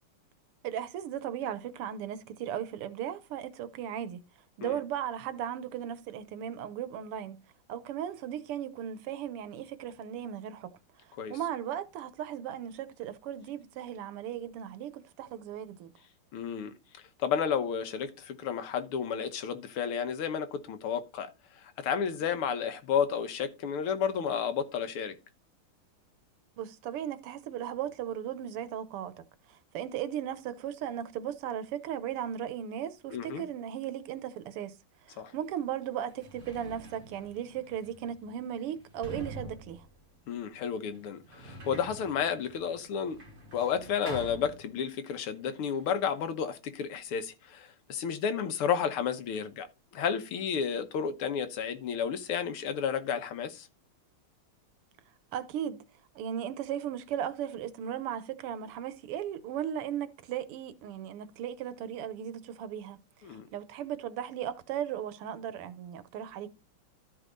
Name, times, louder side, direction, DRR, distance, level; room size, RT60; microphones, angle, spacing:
voice 1, 0.6-4.2 4.6-7.4 7.7-10.7 11.3-15.9 26.6-29.1 29.5-34.8 35.1-39.8 55.3-55.8 56.2-63.0 63.5-66.5, right 10 dB, 90° right, 1.8 m, -36 dB
voice 2, 16.3-16.7 17.2-21.3 21.8-25.2 33.1-33.4 35.2-35.3 40.3-43.2 43.5-49.7 49.9-53.7 63.2-63.5, left 7 dB, 80° left, 2.0 m, -31 dB
Sliding door, 35.3-35.4 36.0-45.2 45.4-46.2, right 1 dB, 35° right, 2.9 m, -47 dB
12.5 x 4.7 x 3.9 m
omnidirectional pair, 2.4 m